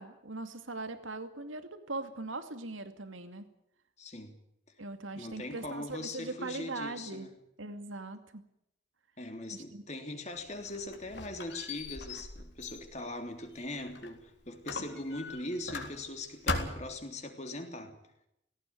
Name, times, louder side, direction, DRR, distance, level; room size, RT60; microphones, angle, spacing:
voice 1, 0.0-3.5 4.8-7.3 7.6-8.4 9.5-9.8, right 2 dB, 85° right, 2.5 m, -40 dB
voice 2, 4.0-4.3 5.1-7.3 9.2-18.0, left 2 dB, 35° left, 3.3 m, -41 dB
Squeak, 10.4-14.2 14.7-16.2 16.5-17.0, left 3 dB, 60° left, 3.7 m, -39 dB
19.0 x 18.0 x 9.5 m
head